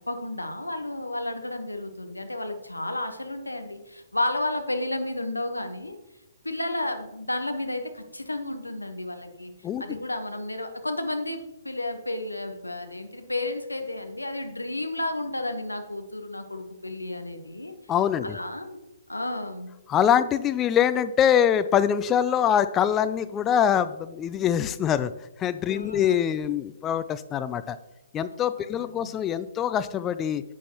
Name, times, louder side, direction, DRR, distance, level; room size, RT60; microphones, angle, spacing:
voice 1, 0.1-6.0 6.4-9.5 9.8-17.7 18.2-18.8 19.1-19.7 25.7-26.2 28.6-29.1, left 1 dB, 90° left, 6 dB, 1.1 m, -32 dB
voice 2, 17.9-18.4 19.9-25.1 25.4-27.8 28.1-30.4, left 9 dB, 20° left, 13 dB, 0.4 m, -24 dB
11.0 x 8.3 x 2.9 m, 0.94 s
figure-of-eight pair, 125°, 0 cm